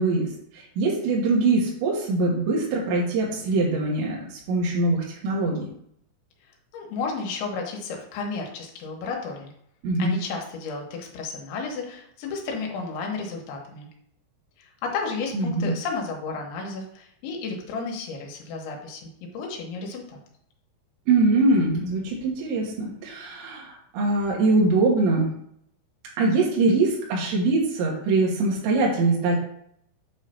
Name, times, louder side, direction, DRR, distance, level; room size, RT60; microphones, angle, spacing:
voice 1, 0.0-5.7 9.8-10.1 15.3-15.7 21.1-25.3 26.2-29.4, right 3 dB, 75° right, -3 dB, 3.5 m, -23 dB
voice 2, 6.7-9.5 10.0-13.9 14.6-20.2, left 4 dB, 80° left, 1 dB, 3.4 m, -32 dB
8.1 x 3.2 x 5.6 m, 0.71 s
omnidirectional pair, 5.3 m